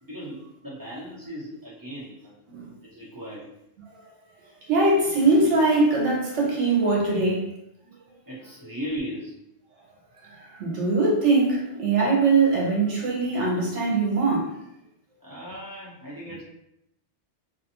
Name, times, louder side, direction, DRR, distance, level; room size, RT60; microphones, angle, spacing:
voice 1, 0.0-2.3 2.8-3.5 8.3-9.4 15.2-16.4, equal, 20° right, 1.0 m, -37 dB
voice 2, 4.7-7.5 10.3-14.5, right 3 dB, 80° right, 1.1 m, -22 dB
2.6 x 2.3 x 2.8 m
omnidirectional pair, 1.2 m